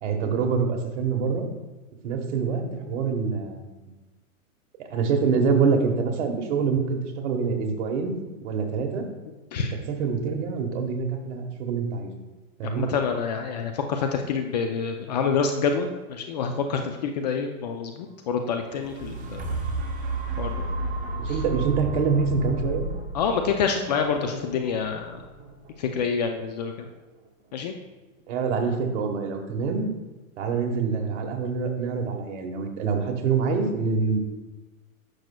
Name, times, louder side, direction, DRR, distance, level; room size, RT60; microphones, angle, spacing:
voice 1, 0.0-1.5 2.0-3.7 4.9-8.2 8.4-9.0 9.6-12.1 12.6-12.9 21.2-22.9 28.3-29.9 30.4-34.2, right 5 dB, 55° right, 4 dB, 1.3 m, -25 dB
voice 2, 12.6-19.6 20.4-20.7 23.1-25.2 25.8-26.9 27.5-27.7, left 5 dB, 30° left, 5 dB, 0.4 m, -27 dB
sound 1, 18.6-26.7 27.2-27.3, right 2 dB, 20° right, 0.8 m, -32 dB
10.5 x 6.2 x 2.3 m, 1.2 s
hypercardioid pair, 130°, 42 cm